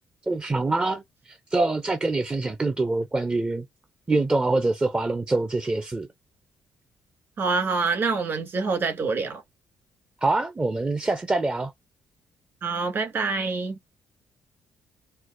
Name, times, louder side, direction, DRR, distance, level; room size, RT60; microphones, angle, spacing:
voice 1, 0.3-1.0 1.3-3.6 4.1-6.1 10.2-11.7, right 2 dB, 20° right, 0.5 m, -25 dB
voice 2, 7.4-9.4 12.6-13.8, right 4 dB, 55° right, 2.1 m, -26 dB
4.4 x 2.0 x 2.4 m
supercardioid pair, 65°, 5 cm